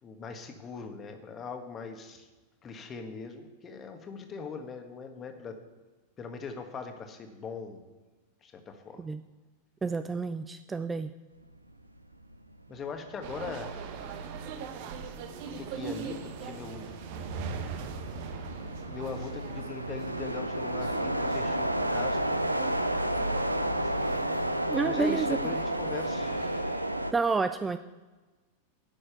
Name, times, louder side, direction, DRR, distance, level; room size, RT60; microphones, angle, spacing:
voice 1, 0.0-2.3 2.6-5.6 6.2-7.8 8.4-9.0 12.7-14.4 15.4-17.0 18.9-22.4 24.8-27.0, left 4 dB, 25° left, 6 dB, 1.6 m, -41 dB
voice 2, 9.8-11.1 24.7-25.4 27.1-27.8, right 4 dB, 15° right, 11 dB, 0.4 m, -29 dB
sound 1, 12.1-12.3 12.7-27.1, right 1 dB, 85° right, 0.6 m, -32 dB
sound 2, 13.2-26.6, right 6 dB, 50° right, 1.1 m, -41 dB
10.0 x 6.5 x 7.9 m, 1.2 s
figure-of-eight pair, 90°, 0 cm